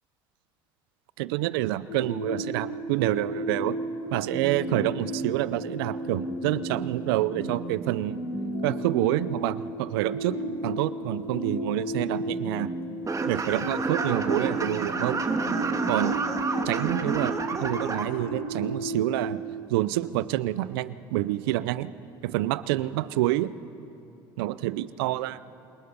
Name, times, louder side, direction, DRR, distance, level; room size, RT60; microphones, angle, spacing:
voice 1, 1.2-3.8 4.1-8.2 8.6-10.4 10.6-12.7 13.3-15.2 15.9-19.4 19.7-21.9 22.2-23.5 24.4-25.4, right 16 dB, 85° right, 17 dB, 0.6 m, -28 dB
sound 1, 1.9-19.4, right 1 dB, 85° left, 4.2 m, -34 dB
sound 2, 13.0-18.0, right 4 dB, 25° right, 1.7 m, -29 dB
27.5 x 19.5 x 5.3 m, 2.7 s
supercardioid pair, 80°, 12 cm